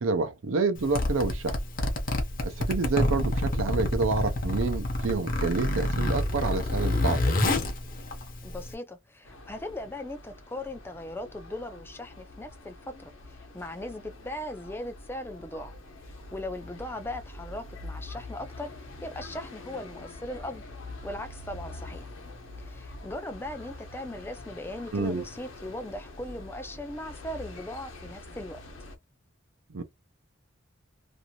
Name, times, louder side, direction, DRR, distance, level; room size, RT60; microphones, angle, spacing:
voice 1, 0.0-1.6 2.4-7.4 24.9-25.2 29.7-29.8, right 4 dB, 80° right, 0.6 m, -28 dB
Zipper (clothing), 0.8-8.7, left 1 dB, 45° left, 0.8 m, -28 dB
voice 2, 8.4-15.7 16.0-18.7 19.0-20.6 21.0-22.1 22.6-28.6, left 1 dB, 10° left, 0.4 m, -39 dB
sound 1, 9.2-29.0, left 2 dB, 70° left, 0.9 m, -45 dB
2.6 x 2.6 x 2.9 m
head